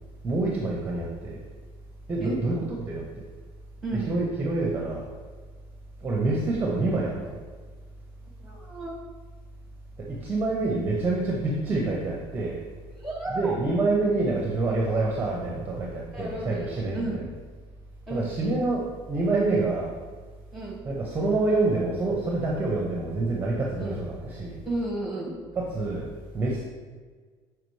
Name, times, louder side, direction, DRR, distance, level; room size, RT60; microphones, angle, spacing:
voice 1, 0.2-1.4 2.1-3.0 4.1-5.1 6.0-7.4 10.0-12.6 13.3-17.1 18.1-19.9 20.8-24.6 25.6-26.1 26.3-26.6, right 2 dB, 15° right, -3 dB, 0.7 m, -27 dB
voice 2, 3.8-4.1 8.4-8.9 13.0-13.5 16.1-17.2 18.1-18.3 20.5-20.8 23.8-24.0 24.6-25.3, right 2 dB, ahead, -2 dB, 1.3 m, -32 dB
6.5 x 4.7 x 3.2 m, 1.5 s
cardioid pair, 160°, 12 cm